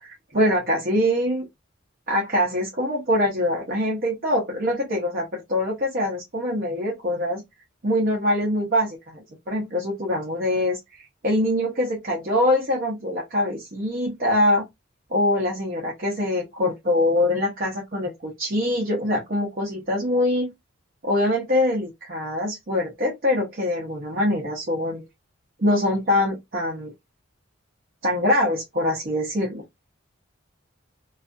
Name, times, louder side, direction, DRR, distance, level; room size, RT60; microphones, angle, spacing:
voice 1, 0.0-1.4 2.1-7.4 7.8-9.2 9.5-14.7 15.1-20.5 21.0-25.0 25.6-26.9 28.0-29.6, left 1 dB, 45° right, 0.6 m, -24 dB
2.4 x 2.3 x 2.4 m
head